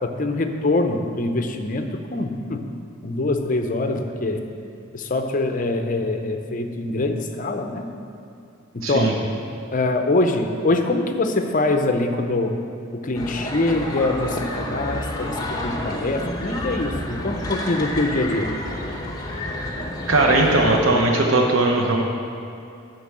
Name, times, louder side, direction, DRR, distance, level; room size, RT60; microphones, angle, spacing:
voice 1, 0.0-2.7 3.0-4.4 4.9-7.9 8.7-9.2 9.7-12.6 12.9-18.5, left 2 dB, 40° left, 6 dB, 0.6 m, -24 dB
voice 2, 8.8-9.1 20.1-22.0, right 2 dB, 75° right, 0 dB, 0.8 m, -18 dB
sound 1, 13.1-20.9, left 1 dB, 20° left, 0.8 m, -29 dB
8.0 x 6.0 x 7.5 m, 2.5 s
head